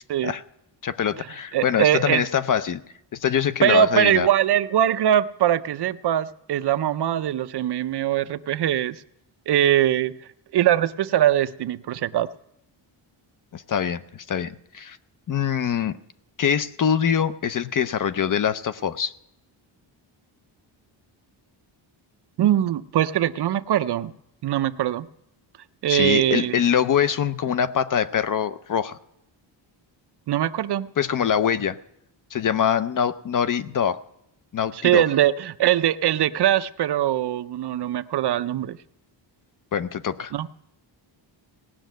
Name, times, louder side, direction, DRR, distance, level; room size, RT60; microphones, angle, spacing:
voice 1, 0.8-2.8 3.1-4.3 13.5-15.0 15.3-16.0 16.4-19.1 25.9-29.0 31.0-31.8 32.3-34.0 34.5-35.0 39.7-40.3, left 8 dB, 45° left, 0.5 m, -24 dB
voice 2, 1.5-2.3 3.6-9.0 9.5-10.2 10.5-12.3 22.4-24.1 24.4-25.1 25.8-26.5 30.3-30.9 34.8-38.8 40.3-40.5, right 11 dB, 55° right, 0.5 m, -22 dB
18.0 x 6.4 x 9.2 m
wide cardioid pair, 175°, 47 cm